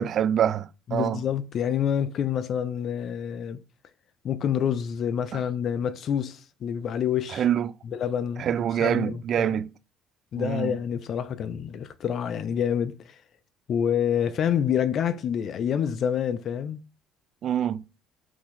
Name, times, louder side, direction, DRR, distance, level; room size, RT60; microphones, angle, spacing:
voice 1, 0.0-1.2 5.3-5.4 7.3-7.7 8.4-9.7 10.4-10.7 17.4-17.8, right 9 dB, 50° right, 0.4 m, -25 dB
voice 2, 0.9-3.6 4.2-7.4 7.8-9.5 10.3-12.9 13.7-16.8, left 8 dB, 50° left, 0.7 m, -27 dB
6.2 x 4.2 x 6.3 m
cardioid pair, 125°, 0 cm